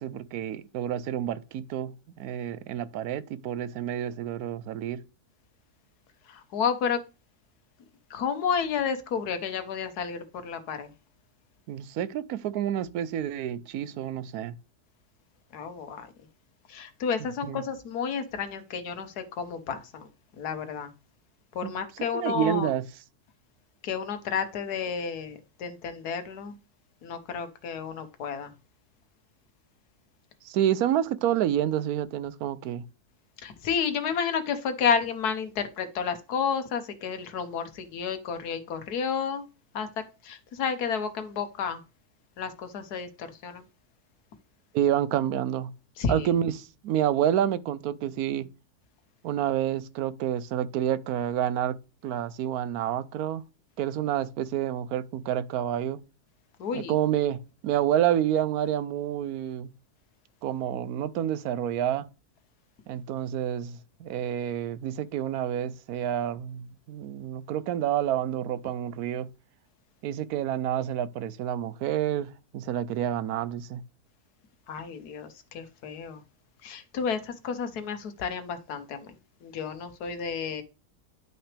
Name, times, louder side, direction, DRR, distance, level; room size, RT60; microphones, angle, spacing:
voice 1, 0.0-5.0 11.7-14.6 17.4-17.6 21.6-21.7 22.1-22.8 30.4-32.8 44.7-45.7 46.1-48.5 49.2-51.8 52.0-53.4 53.8-56.0 56.7-59.7 60.4-62.1 62.9-69.3 70.0-73.8, right 10 dB, 80° right, 1.1 m, -28 dB
voice 2, 6.2-7.0 8.1-10.9 15.5-16.1 16.7-20.1 20.4-20.9 21.5-22.7 23.8-26.6 27.0-28.5 33.4-39.4 39.7-41.8 42.4-43.7 46.0-46.3 56.6-57.0 74.7-76.2 76.6-79.1 79.4-80.6, left 6 dB, 85° left, 1.5 m, -31 dB
10.5 x 5.9 x 3.3 m
omnidirectional pair, 1.6 m